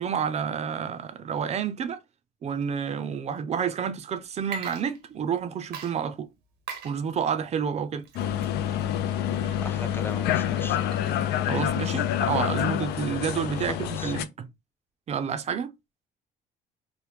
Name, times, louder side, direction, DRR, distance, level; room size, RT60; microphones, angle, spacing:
voice 1, 0.0-2.0 2.4-6.3 6.8-8.1 11.5-14.5 15.1-15.7, right 7 dB, 40° right, 0.5 m, -29 dB
Water / Liquid, 4.4-5.4 5.7-14.0, right 5 dB, 70° right, 0.7 m, -44 dB
sound 1, 8.2-14.3, left 11 dB, 75° left, 0.4 m, -27 dB
voice 2, 9.6-10.8 13.6-14.1, left 3 dB, 15° left, 0.4 m, -39 dB
3.0 x 2.1 x 3.4 m
cardioid pair, 110°, 17 cm